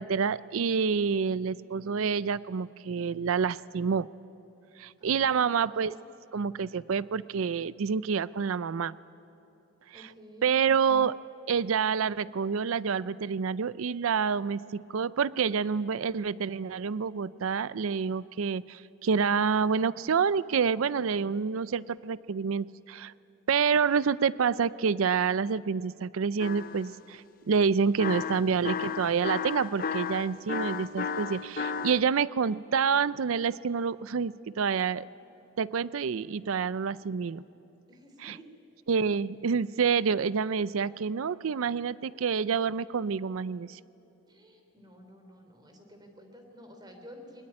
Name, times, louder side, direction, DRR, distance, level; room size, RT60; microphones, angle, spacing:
voice 1, 0.0-4.1 4.8-6.0 6.3-8.9 9.9-10.1 10.4-11.1 11.5-23.1 23.5-35.1 35.6-37.4 38.2-38.4 38.9-43.8, right 6 dB, 80° right, 18 dB, 0.5 m, -28 dB
voice 2, 5.0-6.0 9.9-10.5 37.0-37.1 37.9-38.5 44.3-47.4, equal, 20° right, 4 dB, 3.1 m, -52 dB
sound 1, 26.4-26.9 28.0-32.0, left 6 dB, 45° left, 0.6 m, -33 dB
22.5 x 20.0 x 9.8 m, 2.9 s
head